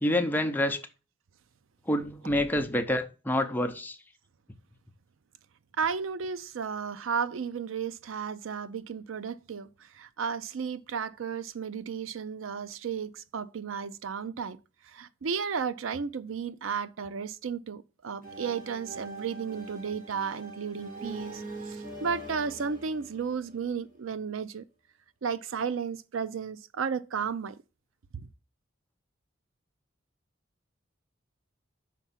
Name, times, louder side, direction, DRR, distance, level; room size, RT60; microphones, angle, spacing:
voice 1, 0.0-0.8 1.9-4.0, left 1 dB, 10° left, 0.7 m, -27 dB
voice 2, 5.8-14.6 14.8-24.6 25.2-27.6, right 6 dB, 90° right, 0.5 m, -33 dB
sound 1, 18.2-24.0, right 2 dB, 45° right, 2.0 m, -43 dB
5.9 x 4.5 x 5.7 m
head